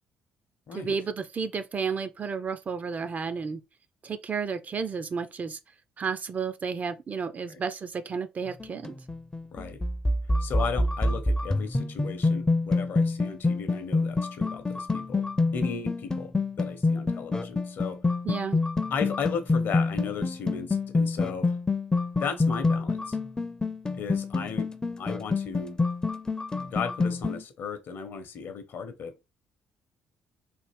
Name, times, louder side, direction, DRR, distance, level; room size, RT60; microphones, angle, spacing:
voice 1, 0.7-3.6 4.0-5.6 6.0-9.0 18.2-18.6, right 5 dB, 35° right, 0.4 m, -32 dB
sound 1, 8.5-27.4, left 3 dB, 15° left, 0.5 m, -27 dB
voice 2, 10.4-15.2 15.5-16.3 16.6-18.0 18.9-21.6 22.2-23.2 23.9-24.7 25.0-25.8 26.7-29.1, left 6 dB, 50° left, 0.7 m, -35 dB
3.4 x 2.4 x 3.2 m
figure-of-eight pair, 45°, 4 cm